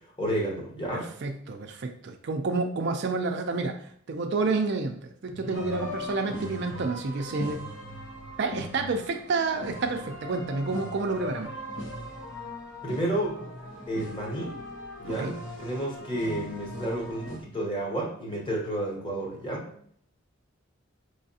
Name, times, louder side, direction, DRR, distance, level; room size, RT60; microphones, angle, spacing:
voice 1, 0.0-1.1 5.4-5.6 12.8-13.5 13.9-14.6 15.0-19.7, right 1 dB, 25° left, -2 dB, 1.0 m, -31 dB
voice 2, 0.9-3.8 4.1-5.0 5.2-7.6 8.4-11.5 15.1-15.3, right 3 dB, 50° right, 4 dB, 0.4 m, -29 dB
sound 1, 5.5-17.4, left 1 dB, 60° left, 0.9 m, -39 dB
5.6 x 3.2 x 2.7 m, 0.64 s
head